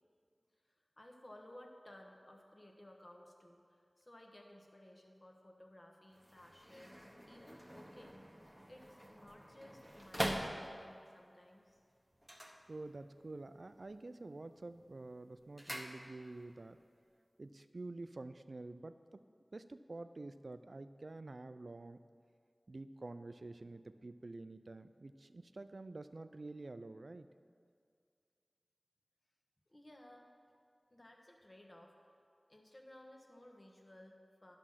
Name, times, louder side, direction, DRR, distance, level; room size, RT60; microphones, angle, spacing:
voice 1, 0.7-8.2 8.7-11.8 12.4-12.5 29.7-30.3 30.9-32.0 32.5-34.6, left 1 dB, 35° left, 1 dB, 1.2 m, -58 dB
sound 1, 6.1-11.1 12.1-13.3 13.6-14.1 14.4-16.5 16.8-16.9, equal, 5° right, 1.0 m, -44 dB
voice 2, 12.7-16.8 17.4-19.2 19.5-22.0 22.7-27.3, right 2 dB, 65° right, 11 dB, 0.4 m, -48 dB
11.0 x 6.2 x 5.8 m, 2.2 s
wide cardioid pair, 60°, 0 cm